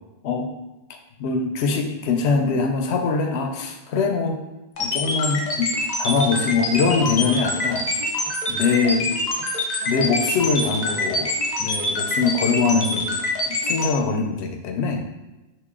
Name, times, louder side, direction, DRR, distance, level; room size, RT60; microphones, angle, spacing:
voice 1, 1.2-4.4 4.8-5.7 6.0-7.9 8.5-9.1 9.9-11.3 11.6-13.2 13.5-15.0, left 4 dB, 85° left, 4 dB, 0.8 m, -22 dB
sound 1, 4.8-13.9, left 2 dB, 45° left, 0.7 m, -25 dB
3.0 x 2.7 x 3.6 m, 1.0 s
omnidirectional pair, 1.1 m